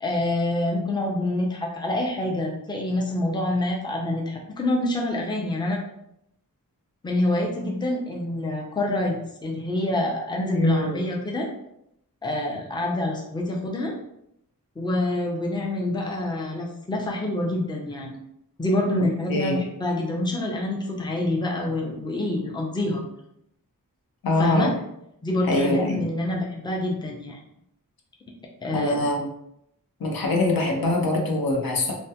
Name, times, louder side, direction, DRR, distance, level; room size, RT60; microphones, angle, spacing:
voice 1, 0.0-5.8 7.0-11.5 12.2-13.9 14.8-18.2 18.6-23.0 24.4-24.7 25.2-27.4 28.6-29.0, left 1 dB, 15° left, -1 dB, 0.5 m, -26 dB
voice 2, 10.5-11.0 19.3-19.6 24.2-24.7 25.4-26.1 28.7-29.3 30.0-31.9, left 2 dB, 85° left, 0 dB, 0.7 m, -23 dB
3.4 x 2.1 x 2.8 m, 0.78 s
wide cardioid pair, 110°, 34 cm